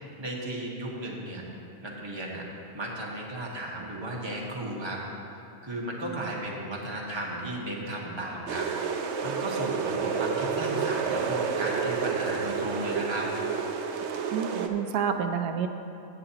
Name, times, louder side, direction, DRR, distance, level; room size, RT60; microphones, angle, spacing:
voice 1, 0.0-1.5 1.8-2.5 2.7-5.0 5.6-8.7 9.2-13.3, right 1 dB, 20° right, -3 dB, 1.2 m, -35 dB
sound 1, 8.5-14.7, right 6 dB, 60° right, 0.8 m, -30 dB
voice 2, 14.3-15.7, right 7 dB, 85° right, 6 dB, 1.1 m, -29 dB
17.0 x 7.8 x 2.9 m, 2.7 s
omnidirectional pair, 1.6 m